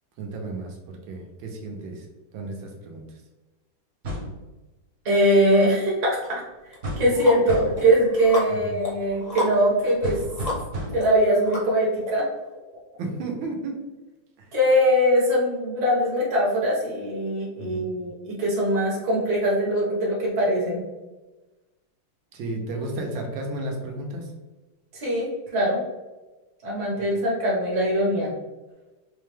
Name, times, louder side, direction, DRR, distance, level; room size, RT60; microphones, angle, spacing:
voice 1, 0.2-2.1 2.3-3.0 7.0-7.1 8.5-8.8 13.0-13.8 14.4-14.5 17.6-17.9 22.3-24.3 27.0-27.1, right 2 dB, 75° right, 1 dB, 1.5 m, -33 dB
sound 1, 4.0-4.4 6.8-7.2 7.5-7.9 10.0-11.2, equal, 50° right, 0.9 m, -32 dB
voice 2, 5.0-6.4 7.0-10.2 10.9-12.3 14.5-20.8 24.9-25.8 26.6-28.3, equal, 25° right, -6 dB, 1.0 m, -22 dB
sound 2, 6.2-6.3 6.7-12.1, left 1 dB, 30° left, 0.7 m, -34 dB
4.5 x 2.2 x 3.3 m, 1.1 s
omnidirectional pair, 2.3 m